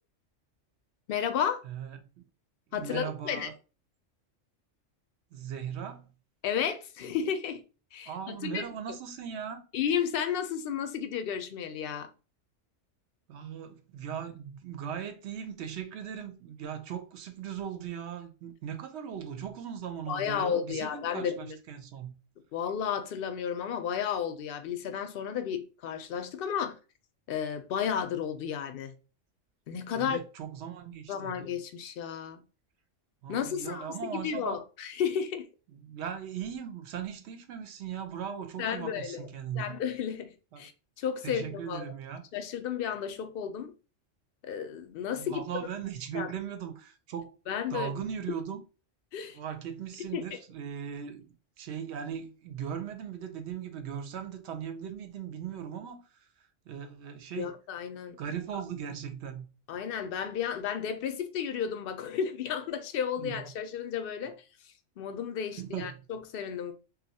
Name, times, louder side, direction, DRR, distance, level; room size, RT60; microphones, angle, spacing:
voice 1, 1.1-1.6 2.7-3.5 6.4-7.6 7.9-8.7 9.7-12.1 20.1-21.6 22.5-26.8 27.3-28.9 29.7-30.2 31.1-32.4 33.3-35.5 38.6-39.3 39.6-40.7 41.0-41.9 42.3-43.7 44.4-45.4 46.1-46.3 47.5-48.0 49.1-49.4 50.1-50.4 57.4-58.2 58.5-58.6 59.7-66.7, left 8 dB, 65° left, 0.6 m, -33 dB
voice 2, 1.6-2.2 2.7-3.5 5.3-6.1 8.1-9.6 13.3-22.1 29.9-31.3 33.2-34.6 35.7-39.8 40.5-40.6 41.2-42.2 45.1-47.3 47.7-48.6 49.3-51.3 51.6-56.3 56.7-57.5 58.2-59.5 63.2-63.4 65.5-66.0, right 8 dB, 65° right, 0.8 m, -38 dB
2.7 x 2.2 x 4.0 m
omnidirectional pair, 1.3 m